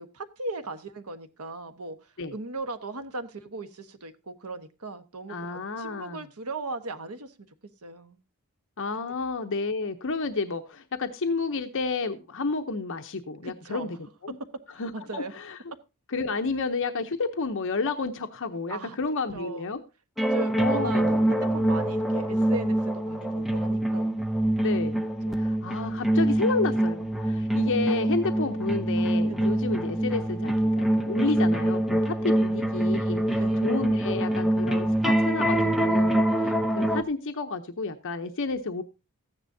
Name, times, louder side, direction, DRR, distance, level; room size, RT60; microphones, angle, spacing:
voice 1, 0.0-2.0 2.3-7.5 7.8-8.2 13.4-13.9 14.9-15.3 18.7-19.0 19.3-19.7 20.2-24.2 25.3-25.4 29.3-29.5 33.4-33.6, right 2 dB, 90° right, 1.3 m, -38 dB
voice 2, 5.3-6.2 8.8-14.0 14.2-14.4 14.8-15.6 16.1-19.8 20.6-21.3 24.6-25.0 25.4-38.8, left 3 dB, 60° left, 0.8 m, -31 dB
sound 1, 20.2-37.0, right 1 dB, ahead, 0.8 m, -25 dB
14.5 x 9.9 x 2.7 m
head